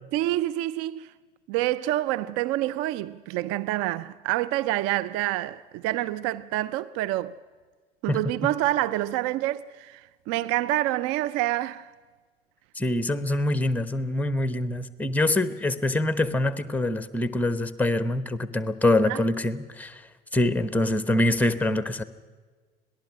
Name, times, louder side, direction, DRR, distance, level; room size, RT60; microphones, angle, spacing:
voice 1, 0.1-1.1 1.5-7.4 8.0-11.9 19.0-19.2, right 15 dB, 45° right, 0.5 m, -27 dB
voice 2, 12.8-20.0 20.3-22.0, left 1 dB, 5° left, 1.1 m, -25 dB
26.0 x 18.0 x 6.1 m
figure-of-eight pair, 65°, 32 cm